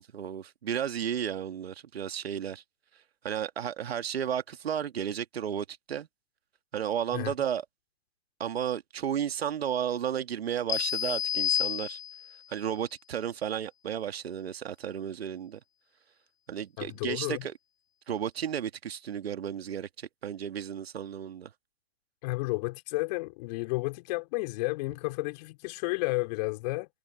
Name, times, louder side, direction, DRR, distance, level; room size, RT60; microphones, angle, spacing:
voice 1, 0.0-2.6 3.2-6.1 6.7-7.7 8.4-12.0 12.5-15.6 16.5-17.5 18.1-21.5, right 9 dB, 65° right, 2.0 m, -33 dB
sound 1, 10.7-12.4, left 10 dB, 60° left, 3.5 m, -30 dB
voice 2, 16.8-17.4 22.2-26.9, left 23 dB, 40° left, 4.3 m, -32 dB
hypercardioid pair, 130°, 34 cm